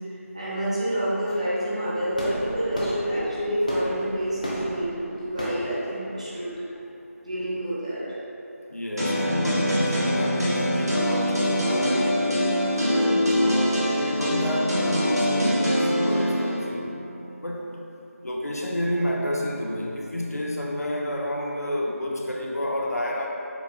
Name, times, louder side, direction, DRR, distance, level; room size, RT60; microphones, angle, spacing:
voice 1, 0.3-6.5 7.2-8.2 12.8-13.3, right 1 dB, 25° right, -10 dB, 0.7 m, -28 dB
sound 1, 2.1-7.1, equal, 30° left, 0.4 m, -35 dB
voice 2, 8.7-12.6 13.4-17.0 17.4-17.8 18.2-23.3, left 1 dB, 80° left, -1 dB, 0.6 m, -30 dB
sound 2, 9.0-16.6, equal, 90° right, 1.2 m, -23 dB
6.8 x 2.3 x 2.3 m, 2.9 s
figure-of-eight pair, 170°, 8 cm